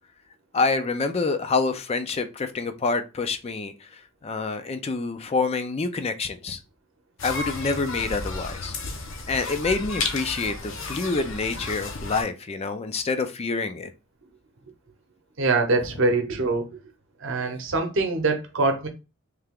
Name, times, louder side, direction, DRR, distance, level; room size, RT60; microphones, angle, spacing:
voice 1, 0.5-6.6 7.2-8.8 9.3-13.9, left 4 dB, 30° left, 0.4 m, -27 dB
sound 1, 7.2-12.2, left 3 dB, 60° left, 0.7 m, -33 dB
voice 2, 15.4-16.7 17.2-18.9, right 3 dB, 60° right, 0.8 m, -23 dB
3.3 x 2.8 x 3.5 m
head